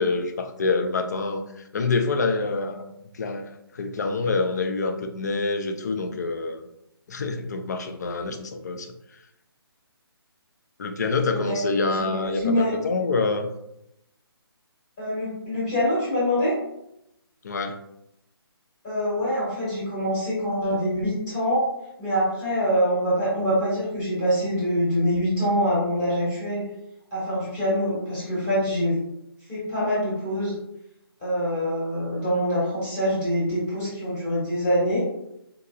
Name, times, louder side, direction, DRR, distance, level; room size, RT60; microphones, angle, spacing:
voice 1, 0.0-6.6 7.1-8.9 10.8-13.5 17.4-17.8, left 3 dB, 45° left, 6 dB, 0.4 m, -26 dB
voice 2, 11.3-12.7 15.0-16.5 18.8-21.6 22.0-26.6 27.1-28.9 29.5-30.5 31.2-35.0, equal, 20° left, -9 dB, 1.2 m, -25 dB
3.8 x 2.8 x 2.3 m, 0.82 s
hypercardioid pair, 160°, 13 cm